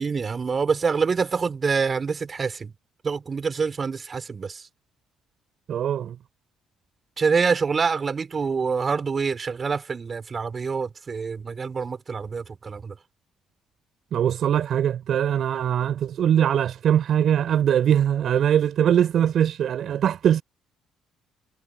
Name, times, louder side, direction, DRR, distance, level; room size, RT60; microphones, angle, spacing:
voice 1, 0.0-2.7 3.0-4.6 7.2-12.9, right 5 dB, 40° right, 5.1 m, -26 dB
voice 2, 5.7-6.2 14.1-20.4, right 9 dB, 60° right, 3.9 m, -21 dB
hypercardioid pair, 50°, 0 cm